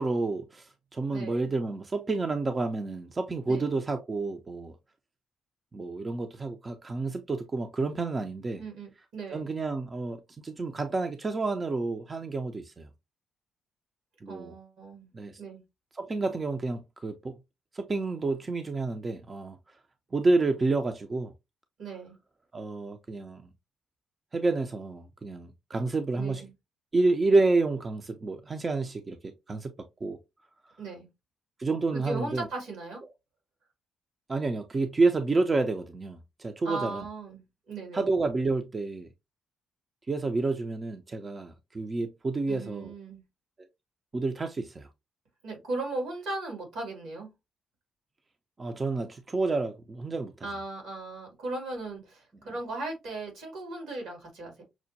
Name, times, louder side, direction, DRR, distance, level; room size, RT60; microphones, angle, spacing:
voice 1, 0.0-4.8 5.7-8.6 9.3-12.9 14.2-14.5 15.1-15.4 16.0-17.4 17.7-19.6 20.1-21.3 22.5-23.5 24.3-26.4 26.9-29.7 30.0-30.2 31.6-32.5 34.3-37.1 37.9-39.1 40.1-42.9 44.1-44.9 48.6-50.5, right 3 dB, 35° right, 0.5 m, -29 dB
voice 2, 1.1-1.5 3.5-3.7 8.6-9.5 14.3-15.1 15.4-15.6 21.8-22.2 26.1-26.5 30.8-31.1 31.9-33.0 36.6-38.1 42.5-43.2 45.4-47.3 50.4-54.6, right 2 dB, 85° right, 2.2 m, -37 dB
6.0 x 2.1 x 2.7 m
supercardioid pair, 60°, 0 cm